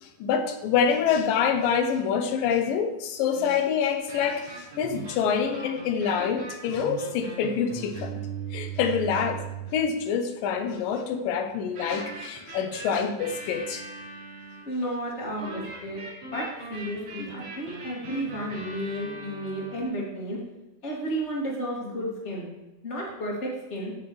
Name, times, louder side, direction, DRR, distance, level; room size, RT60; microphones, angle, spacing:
voice 1, 0.0-8.2 8.5-9.4 9.7-13.9, left 7 dB, 80° left, 7 dB, 2.5 m, -26 dB
sound 1, 4.0-9.8 11.7-14.7 15.4-19.8, right 5 dB, 75° right, 5.2 m, -39 dB
voice 2, 14.7-16.0 16.3-20.4 20.8-22.5 22.8-23.9, equal, 20° left, -4 dB, 2.5 m, -32 dB
15.5 x 7.0 x 3.2 m, 1.0 s
omnidirectional pair, 4.0 m